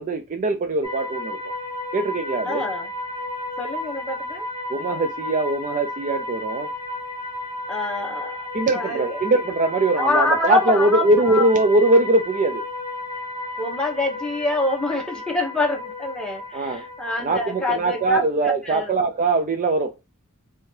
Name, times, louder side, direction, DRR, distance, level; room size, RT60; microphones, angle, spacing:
voice 1, 0.0-1.4 1.9-2.7 4.7-6.7 8.5-12.6 16.5-16.8 17.2-19.9, right 2 dB, 35° right, 0.4 m, -21 dB
sound 1, 0.8-18.1, left 2 dB, 20° right, 1.4 m, -33 dB
voice 2, 2.4-2.9 3.6-4.4 7.7-9.2 10.0-11.5 13.6-18.9, left 2 dB, 5° left, 0.9 m, -26 dB
3.4 x 2.7 x 3.1 m
head